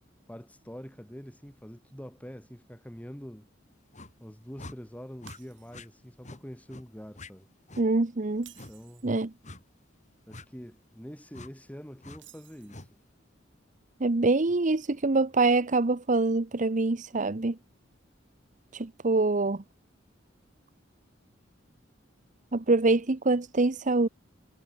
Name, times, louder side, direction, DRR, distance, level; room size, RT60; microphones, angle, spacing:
voice 1, 0.3-3.5 4.2-7.5 8.7-9.1 10.3-12.9, equal, 10° left, 7.1 m, -45 dB
sound 1, 3.9-4.1 4.6-4.8 5.2-5.4 5.7-5.9 6.2-6.4 6.7-6.8 7.1-7.3 7.7-7.9 8.5-8.7 9.4-9.6 10.3-10.5 11.3-11.5 12.0-12.2 12.7-12.9, left 2 dB, 40° left, 6.1 m, -45 dB
Shatter, 5.3-6.1 6.5-6.7 8.3-9.2 12.1-13.0, right 11 dB, 65° right, 7.1 m, -54 dB
voice 2, 7.8-8.5 9.0-9.3 14.0-17.6 18.7-19.6 22.5-24.1, right 3 dB, 40° right, 0.8 m, -25 dB
head